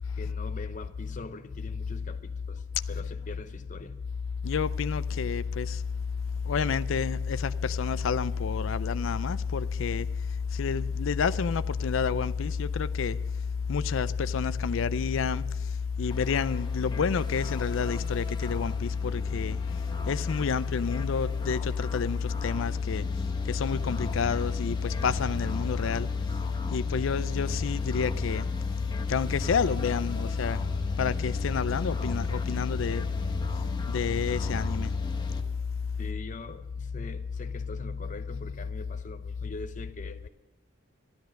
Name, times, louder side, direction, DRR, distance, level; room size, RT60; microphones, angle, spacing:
voice 1, 0.2-4.0 5.1-5.2 20.0-20.1 36.0-40.3, left 2 dB, 35° left, 0.8 m, -43 dB
voice 2, 4.4-5.8 6.5-10.1 10.6-13.2 13.7-15.4 16.0-19.6 20.1-23.1 23.5-26.1 26.7-28.5 29.1-30.6 31.0-33.1 33.9-34.9, left 6 dB, 65° left, 0.4 m, -28 dB
sound 1, 16.1-35.4, left 1 dB, 20° left, 1.1 m, -38 dB
13.0 x 12.5 x 6.4 m
head